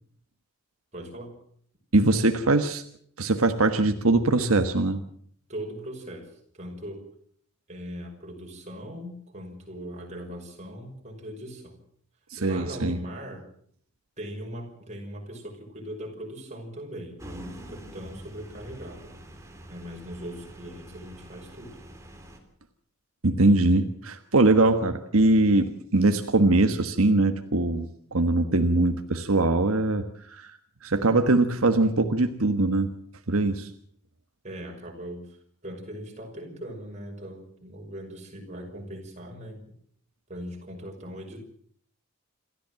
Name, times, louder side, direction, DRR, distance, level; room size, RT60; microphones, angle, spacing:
voice 1, 0.9-1.4 5.5-7.0 7.7-11.8 12.4-13.5 14.2-19.1 19.7-21.8 34.4-39.6 40.3-41.4, equal, 30° right, 1 dB, 5.9 m, -40 dB
voice 2, 1.9-2.8 3.2-5.0 12.3-13.0 23.2-27.9 28.1-30.5 30.8-32.9 33.3-33.7, right 2 dB, 80° right, 6 dB, 1.4 m, -22 dB
sound 1, 17.2-22.4, right 1 dB, 15° right, 3.2 m, -45 dB
28.0 x 14.0 x 7.6 m, 0.62 s
head